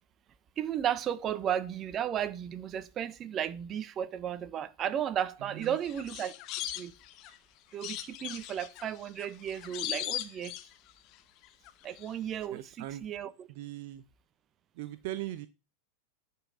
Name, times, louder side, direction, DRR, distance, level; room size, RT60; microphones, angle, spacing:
voice 1, 0.6-6.9 7.7-10.5 11.8-13.5, right 9 dB, 30° right, 1.1 m, -34 dB
voice 2, 5.4-5.8 12.5-13.0 13.5-14.0 14.8-15.5, right 14 dB, 50° right, 0.8 m, -40 dB
sound 1, 5.6-7.4 7.8-11.1 11.4-12.1 12.3-12.4, left 13 dB, 40° left, 1.1 m, -39 dB
11.0 x 5.7 x 7.9 m
figure-of-eight pair, 90°, 0 cm